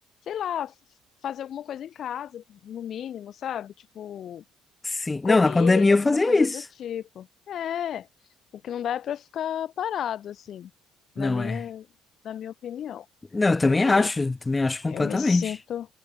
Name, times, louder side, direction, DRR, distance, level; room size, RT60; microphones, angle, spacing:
voice 1, 0.3-0.7 1.2-4.4 5.2-8.1 8.5-10.7 11.1-11.9 12.2-13.1 13.6-14.1 14.9-15.9, left 10 dB, 60° left, 1.1 m, -33 dB
voice 2, 4.8-6.6 11.2-11.6 13.3-15.5, left 3 dB, 20° left, 1.3 m, -21 dB
supercardioid pair, 70°, 0 cm